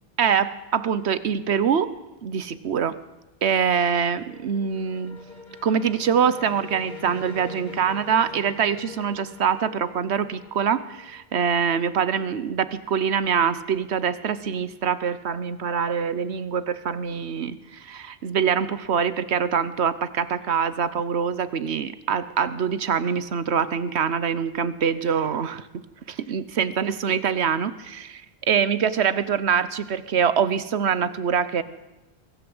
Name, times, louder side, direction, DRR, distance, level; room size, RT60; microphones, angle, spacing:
voice 1, 0.2-1.9 2.2-3.0 3.4-5.2 5.6-25.6 26.1-28.2 28.5-31.6, right 7 dB, 80° right, 15 dB, 1.2 m, -24 dB
sound 1, 4.2-11.3, left 2 dB, 45° left, 1.9 m, -43 dB
23.0 x 14.5 x 7.9 m, 1.1 s
omnidirectional pair, 1.1 m